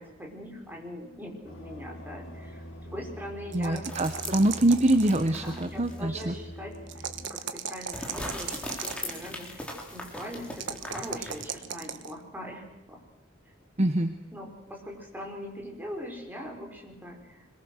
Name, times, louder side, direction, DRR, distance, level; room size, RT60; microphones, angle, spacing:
voice 1, 0.0-3.9 5.3-13.0 13.4-13.5 14.3-17.5, equal, 10° right, 0 dB, 5.6 m, -41 dB
sound 1, 1.4-7.3, equal, 80° left, 5.9 m, -44 dB
voice 2, 3.5-6.3 13.8-14.1, right 1 dB, 35° right, 8 dB, 1.1 m, -24 dB
sound 2, 3.5-5.4 6.9-9.2 10.6-12.1, right 8 dB, 65° right, 1.2 m, -37 dB
sound 3, 3.9-6.1 6.5-6.6 7.9-11.6, left 1 dB, 5° left, 4.0 m, -40 dB
26.0 x 22.5 x 6.6 m, 0.95 s
head